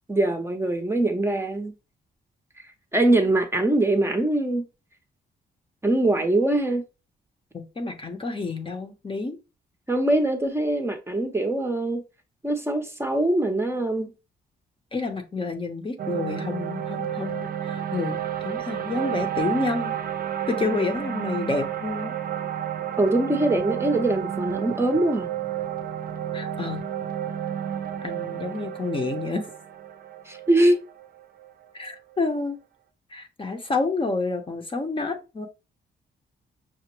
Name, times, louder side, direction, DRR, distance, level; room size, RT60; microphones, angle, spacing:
voice 1, 0.1-1.7 2.9-4.6 5.8-6.8 9.9-12.0 12.4-14.1 23.0-25.3 30.3-30.8, right 1 dB, 15° right, 0.6 m, -23 dB
voice 2, 7.5-9.4 14.9-18.2 18.4-19.9 20.5-22.1 26.3-26.9 28.0-29.4 31.7-32.6 33.1-35.5, left 3 dB, 30° left, 0.7 m, -29 dB
sound 1, 16.0-32.2, right 10 dB, 55° right, 0.5 m, -31 dB
5.8 x 2.1 x 3.0 m
cardioid pair, 100°, 18 cm